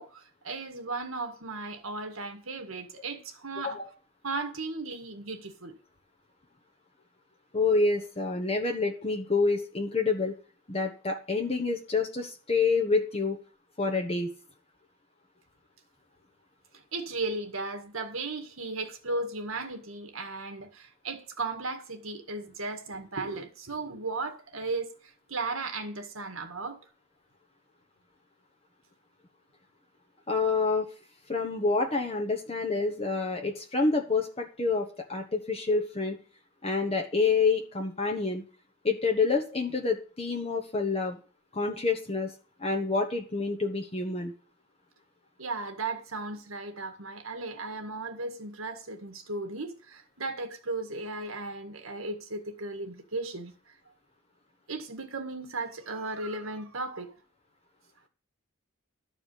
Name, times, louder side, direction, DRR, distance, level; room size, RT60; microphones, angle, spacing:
voice 1, 0.0-3.8 4.2-5.8 16.9-26.8 45.4-53.7 54.7-57.1, right 3 dB, 85° right, 1.9 m, -36 dB
voice 2, 3.6-3.9 7.5-10.4 10.7-13.4 13.8-14.3 30.3-30.9 31.3-36.2 36.6-38.4 38.8-41.2 41.5-42.3 42.6-44.3, left 4 dB, 30° left, 1.1 m, -28 dB
12.5 x 4.9 x 8.3 m
head